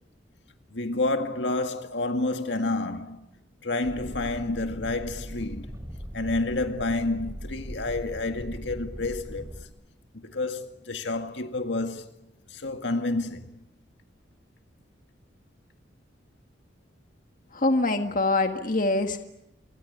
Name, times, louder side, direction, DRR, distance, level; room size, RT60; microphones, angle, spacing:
voice 1, 0.7-3.3 3.6-5.8 6.1-9.7 10.1-12.2 12.5-13.5, left 2 dB, 70° left, 2.0 m, -29 dB
sound 1, 3.8-9.7, equal, 15° right, 5.3 m, -39 dB
voice 2, 17.5-19.2, left 2 dB, 45° left, 1.8 m, -24 dB
28.0 x 23.5 x 8.4 m
head